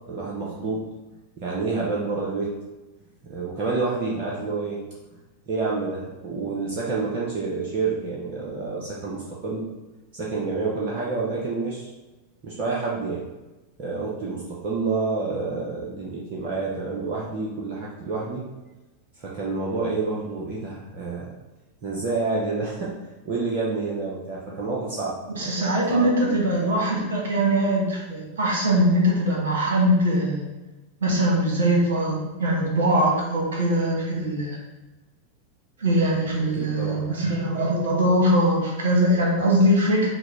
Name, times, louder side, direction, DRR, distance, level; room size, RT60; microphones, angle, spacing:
voice 1, 0.1-0.9 1.4-2.5 3.2-4.8 5.5-9.7 10.1-11.9 12.4-13.3 13.8-18.4 19.2-21.3 21.8-22.9 23.2-25.2 25.9-26.4 36.5-37.1, right 3 dB, 40° right, -5 dB, 0.7 m, -28 dB
voice 2, 25.3-30.5 31.0-34.6 35.8-40.1, right 1 dB, 65° right, -2 dB, 1.2 m, -22 dB
5.9 x 2.1 x 3.3 m, 1.1 s
figure-of-eight pair, 90°, 0 cm